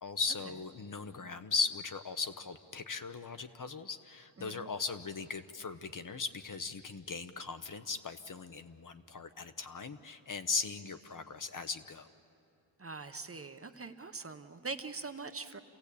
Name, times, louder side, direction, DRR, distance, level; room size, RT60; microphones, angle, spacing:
voice 1, 0.0-12.1, left 4 dB, 45° left, 10 dB, 0.8 m, -38 dB
voice 2, 4.4-4.7 12.8-15.6, right 4 dB, 30° right, 8 dB, 0.8 m, -43 dB
28.0 x 16.5 x 8.4 m, 2.6 s
wide cardioid pair, 135°, 47 cm